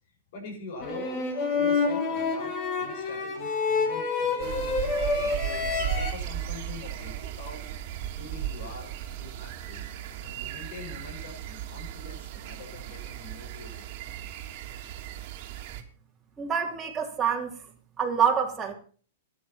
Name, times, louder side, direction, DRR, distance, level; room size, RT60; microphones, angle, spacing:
voice 1, 0.3-7.9 8.2-8.9 9.2-9.9 10.2-13.8, left 3 dB, 55° left, 1 dB, 6.6 m, -44 dB
sound 1, 0.8-6.1, left 4 dB, 35° left, 2.9 m, -28 dB
sound 2, 4.4-15.8, right 11 dB, 45° right, 2.6 m, -36 dB
voice 2, 16.4-17.5 18.0-18.7, right 7 dB, 15° right, 0 dB, 3.2 m, -26 dB
14.0 x 10.0 x 5.8 m, 0.42 s
hypercardioid pair, 145°, 0 cm